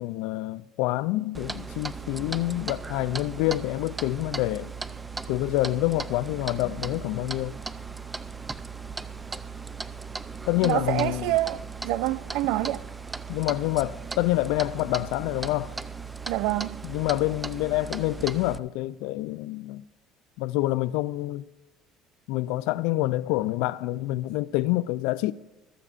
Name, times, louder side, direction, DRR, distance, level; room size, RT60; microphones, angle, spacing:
voice 1, 0.0-4.7 5.3-7.6 10.5-11.4 13.3-15.7 16.8-19.8 20.4-21.4 22.3-25.3, left 17 dB, 80° left, 0.4 m, -27 dB
Clock, 1.3-18.6, right 4 dB, 15° right, 0.4 m, -37 dB
voice 2, 10.6-12.8 16.3-16.8, right 16 dB, 80° right, 0.4 m, -27 dB
21.5 x 12.0 x 2.5 m
cardioid pair, 135°, 0 cm